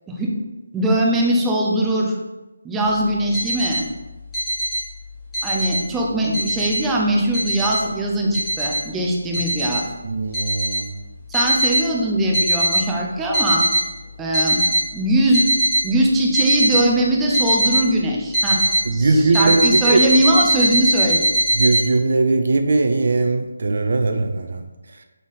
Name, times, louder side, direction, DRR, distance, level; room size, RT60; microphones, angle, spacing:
voice 1, 0.7-2.2 2.6-3.9 5.4-9.8 11.3-13.7 14.2-14.6 14.9-15.5 15.8-18.6 18.9-21.3, right 1 dB, 10° right, -2 dB, 0.5 m, -21 dB
sound 1, 3.1-3.8 4.3-4.8 5.2-5.8 6.3-6.8 7.3-7.8 8.3-8.8 9.3-9.8 10.3-10.8 11.3-11.8 12.3-12.8 13.2-13.8 14.3-14.8 15.3-15.8 16.3-16.8 17.3-17.8 18.3-18.8 19.3-21.8, right 1 dB, 5° left, 1.2 m, -20 dB
voice 2, 10.0-10.8 18.9-20.0 21.6-24.4, right 3 dB, 55° right, 6 dB, 0.4 m, -19 dB
3.5 x 3.3 x 4.0 m, 1.1 s
figure-of-eight pair, 160°, 0 cm